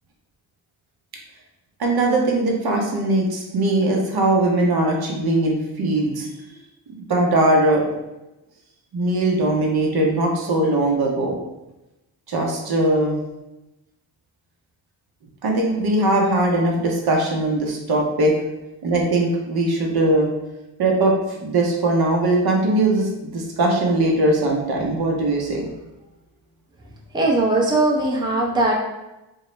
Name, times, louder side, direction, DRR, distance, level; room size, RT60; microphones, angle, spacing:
voice 1, 1.8-6.3 7.1-7.8 8.9-11.4 12.3-13.2 15.4-18.3 18.8-20.3 20.8-21.1 21.4-25.7, right 2 dB, 55° right, -1 dB, 0.7 m, -20 dB
voice 2, 27.1-28.7, right 2 dB, 10° right, -3 dB, 0.5 m, -19 dB
2.3 x 2.0 x 3.0 m, 0.96 s
cardioid pair, 55°, 44 cm